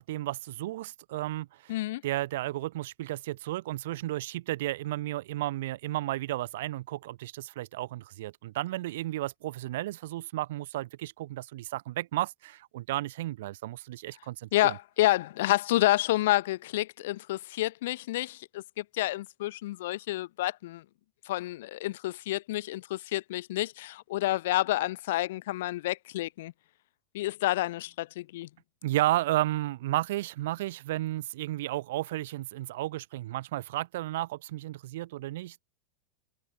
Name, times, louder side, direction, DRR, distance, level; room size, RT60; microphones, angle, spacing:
voice 1, 0.0-1.7 2.0-14.8 28.8-35.6, right 16 dB, 65° right, 1.6 m, -33 dB
voice 2, 1.7-2.0 14.5-20.8 21.3-26.5 27.1-28.5, left 16 dB, 65° left, 1.0 m, -29 dB
supercardioid pair, 165°, 0 cm